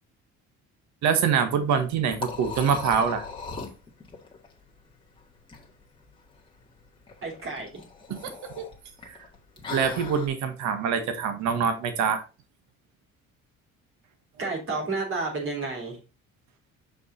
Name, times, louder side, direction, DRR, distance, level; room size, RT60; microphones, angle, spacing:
voice 1, 1.0-3.2 8.6-8.7 9.0-9.2 9.7-12.2, right 6 dB, 70° right, 8 dB, 1.5 m, -25 dB
Liquid, 1.6-10.3, left 5 dB, 15° left, 1.9 m, -40 dB
voice 2, 7.2-7.7 14.4-16.0, right 3 dB, 45° right, 0 dB, 3.5 m, -30 dB
5.8 x 5.3 x 3.9 m, 0.31 s
cardioid pair, 110°, 29 cm